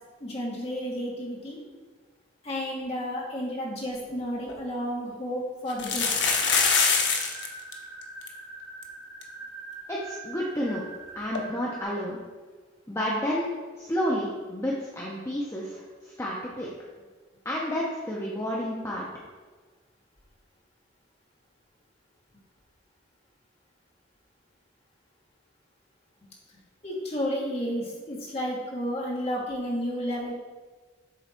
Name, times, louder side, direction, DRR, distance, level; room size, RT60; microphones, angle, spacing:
voice 1, 0.2-1.6 2.4-6.1 26.8-30.3, equal, 30° left, -4 dB, 1.5 m, -31 dB
sound 1, 4.1-4.2 4.5-4.6 5.7-7.5 7.7-7.8 8.0-8.3 8.8-8.9 9.2-9.3 11.3-11.4, left 5 dB, 65° left, 0.8 m, -24 dB
sound 2, 6.8-11.8, right 3 dB, 10° right, 1.4 m, -43 dB
voice 2, 9.9-10.9 11.2-12.2 12.9-15.8 16.2-16.7 17.4-19.1, equal, 15° left, -4 dB, 0.6 m, -30 dB
7.5 x 3.5 x 4.3 m, 1.4 s
head